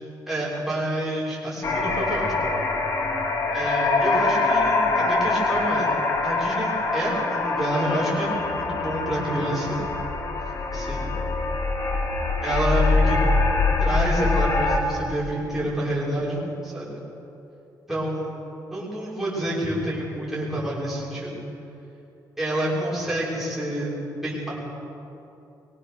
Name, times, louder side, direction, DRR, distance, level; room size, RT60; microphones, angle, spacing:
voice 1, 0.3-2.3 3.5-5.9 6.2-9.8 10.7-11.1 12.4-13.2 13.8-17.0 17.9-18.3 18.7-21.4 22.4-23.9 24.2-24.5, right 1 dB, 5° right, -8 dB, 5.9 m, -28 dB
sound 1, 1.6-14.8, left 3 dB, 45° left, 2.5 m, -24 dB
24.0 x 21.5 x 6.6 m, 2.9 s
wide cardioid pair, 175°, 8 cm